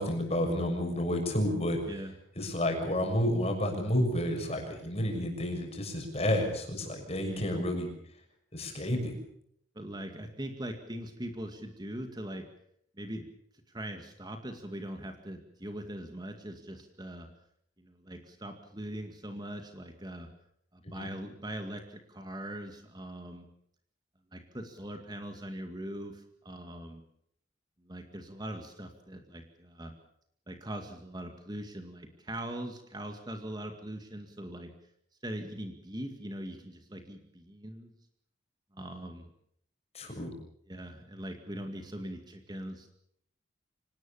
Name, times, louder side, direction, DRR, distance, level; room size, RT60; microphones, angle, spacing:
voice 1, 0.0-1.8 2.4-7.9 8.5-9.1 20.9-21.1 39.9-40.3, left 1 dB, 35° left, 3 dB, 6.6 m, -30 dB
voice 2, 7.1-7.5 9.8-12.4 13.0-13.3 13.7-17.3 17.8-20.3 20.7-23.5 24.3-27.0 27.8-29.9 30.5-34.7 35.2-37.9 38.7-39.3 40.1-40.4 40.7-42.9, right 1 dB, 20° right, 5 dB, 2.1 m, -41 dB
26.0 x 19.0 x 7.3 m, 0.69 s
head